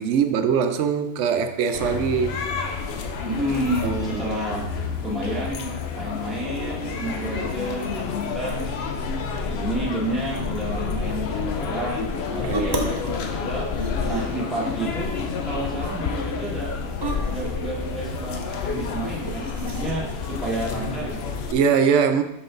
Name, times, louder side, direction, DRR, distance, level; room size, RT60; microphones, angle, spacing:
voice 1, 0.0-2.4 3.8-4.2 4.5-4.9 12.5-12.8 21.5-22.2, right 6 dB, 85° right, 7 dB, 0.9 m, -22 dB
sound 1, 1.7-21.5, left 5 dB, 65° left, 0.9 m, -29 dB
voice 2, 3.2-4.6 5.0-5.6 5.9-8.5 9.4-13.6 14.0-16.7 17.3-21.3, right 1 dB, ahead, -6 dB, 1.6 m, -30 dB
sound 2, 12.5-13.1 13.4-14.5 14.9-15.3 15.6-15.7 17.0-17.5 19.0-19.9, right 1 dB, 25° right, 0.6 m, -31 dB
6.0 x 5.6 x 3.8 m, 0.86 s
omnidirectional pair, 1.2 m